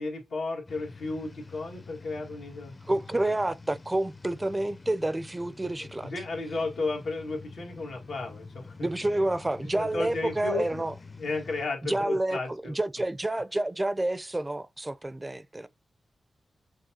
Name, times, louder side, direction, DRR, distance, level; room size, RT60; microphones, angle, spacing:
voice 1, 0.0-2.8 3.1-3.2 6.0-8.9 9.6-10.9 11.2-12.7, left 3 dB, 85° left, 1.7 m, -34 dB
sound 1, 0.7-11.7, left 4 dB, 40° left, 0.7 m, -47 dB
voice 2, 2.9-6.1 8.8-10.9 11.8-15.7, right 1 dB, 25° right, 0.5 m, -29 dB
6.2 x 2.4 x 2.8 m
cardioid pair, 45°, 0 cm